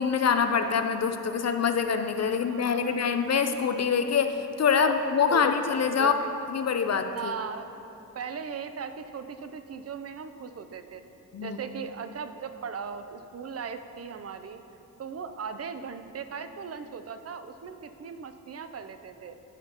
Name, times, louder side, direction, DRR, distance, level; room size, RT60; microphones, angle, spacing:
voice 1, 0.0-6.1 6.5-7.3 11.3-11.6, left 6 dB, 50° left, 7 dB, 0.5 m, -25 dB
voice 2, 2.5-3.0 4.7-4.9 5.3-6.3 7.1-7.7 8.1-11.0 11.4-14.6 15.0-19.4, right 6 dB, 45° right, 9 dB, 0.5 m, -38 dB
14.0 x 5.8 x 2.9 m, 2.8 s
cardioid pair, 70°, 35 cm